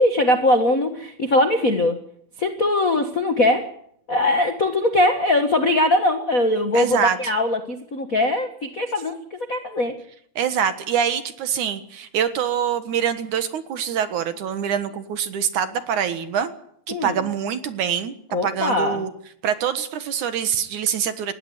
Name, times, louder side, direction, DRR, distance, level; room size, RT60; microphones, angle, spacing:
voice 1, 0.0-2.0 2.4-3.7 4.1-9.9 16.9-17.2 18.3-19.1, left 1 dB, 65° left, 7 dB, 0.8 m, -21 dB
voice 2, 6.7-7.2 10.4-16.5 16.9-18.1 18.4-19.1 19.4-21.3, right 8 dB, 60° right, 10 dB, 2.6 m, -24 dB
20.0 x 16.5 x 9.5 m, 0.66 s
omnidirectional pair, 4.3 m